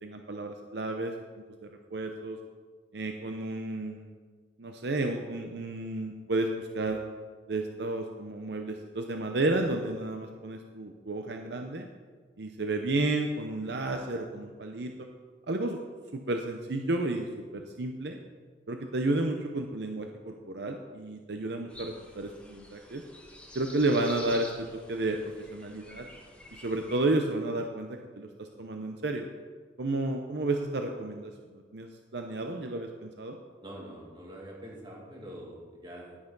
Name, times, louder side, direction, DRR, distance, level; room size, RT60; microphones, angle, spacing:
voice 1, 0.0-1.1 1.6-2.4 2.9-4.1 4.6-7.0 7.5-11.9 12.4-14.9 15.5-15.8 16.1-17.3 17.5-18.2 18.7-23.0 23.5-25.2 25.5-26.0 26.6-29.3 29.8-33.4, right 2 dB, 70° right, 4 dB, 0.8 m, -32 dB
sound 1, 21.7-27.0, left 1 dB, 5° left, 1.4 m, -48 dB
voice 2, 33.6-36.2, right 1 dB, 25° right, -3 dB, 2.5 m, -45 dB
11.5 x 9.8 x 4.0 m, 1.5 s
head